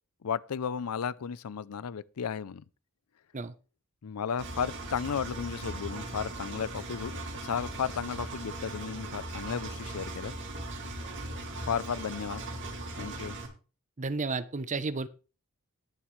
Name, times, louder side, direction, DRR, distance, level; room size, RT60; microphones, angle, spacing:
voice 1, 0.2-2.6 4.0-10.3 11.7-12.4 13.0-13.4, left 7 dB, 80° left, 0.5 m, -34 dB
Engine, 4.4-13.5, right 2 dB, 60° right, 2.7 m, -39 dB
voice 2, 14.0-15.1, right 3 dB, 35° right, 0.8 m, -32 dB
19.5 x 7.2 x 3.2 m
head